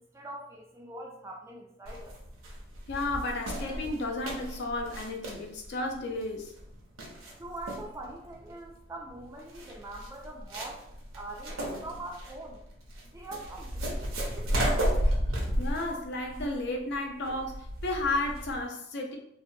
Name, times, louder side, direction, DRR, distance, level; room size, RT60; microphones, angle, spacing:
voice 1, 0.0-2.1 7.4-10.8 11.1-12.6 13.1-14.7, right 2 dB, 15° right, 0 dB, 0.3 m, -43 dB
sound 1, 1.9-18.6, equal, 80° right, 0.6 m, -34 dB
voice 2, 2.9-6.5 15.6-19.2, left 2 dB, 55° left, 2 dB, 0.5 m, -33 dB
3.0 x 2.1 x 2.6 m, 0.76 s
head